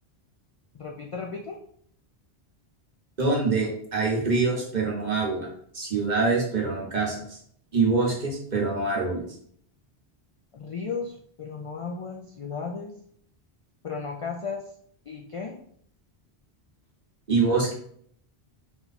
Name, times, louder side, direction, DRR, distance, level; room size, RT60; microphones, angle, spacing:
voice 1, 0.7-1.6 10.5-12.9 13.8-14.6 15.1-15.6, left 5 dB, 55° left, 1 dB, 0.3 m, -35 dB
voice 2, 3.2-5.5 5.7-7.4 7.7-9.2 17.3-17.7, right 4 dB, 45° right, -2 dB, 1.1 m, -25 dB
4.3 x 2.3 x 4.0 m, 0.63 s
omnidirectional pair, 1.1 m